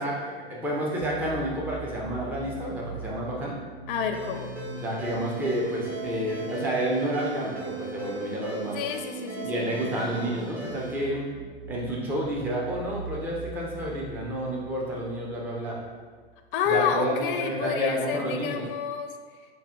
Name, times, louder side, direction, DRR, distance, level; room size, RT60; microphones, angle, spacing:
voice 1, 0.0-3.6 4.8-8.8 9.4-11.3 11.7-15.8 16.7-18.6, right 1 dB, 5° right, -3 dB, 0.4 m, -30 dB
sound 1, 1.0-16.5, right 6 dB, 60° right, 0.5 m, -41 dB
voice 2, 3.9-4.5 8.7-9.6 16.5-19.1, left 7 dB, 55° left, 5 dB, 0.5 m, -29 dB
Ringtone, 4.1-11.0, right 1 dB, 80° right, 1.3 m, -40 dB
5.4 x 2.1 x 3.7 m, 1.5 s
hypercardioid pair, 125°, 31 cm